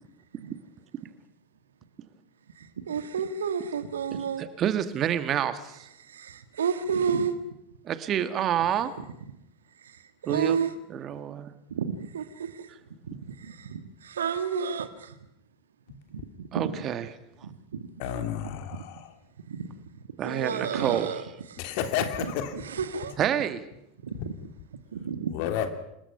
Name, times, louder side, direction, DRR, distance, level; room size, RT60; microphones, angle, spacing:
voice 1, 2.6-4.5 6.0-7.3 9.8-10.7 11.7-12.7 13.0-15.2 16.1-16.8 17.4-17.9 19.5-21.6 22.5-23.2 24.0-24.2 24.9-25.3, right 6 dB, 70° right, 11 dB, 1.7 m, -31 dB
voice 2, 4.4-5.9 7.9-8.9 10.3-10.6 10.9-11.6 16.5-17.0 20.2-21.1 23.2-23.6, right 10 dB, 35° right, 11 dB, 1.9 m, -28 dB
voice 3, 18.0-19.1 21.6-22.5 25.3-25.7, left 9 dB, 55° left, 7 dB, 3.0 m, -30 dB
27.0 x 21.0 x 5.8 m, 0.81 s
figure-of-eight pair, 80°, 0 cm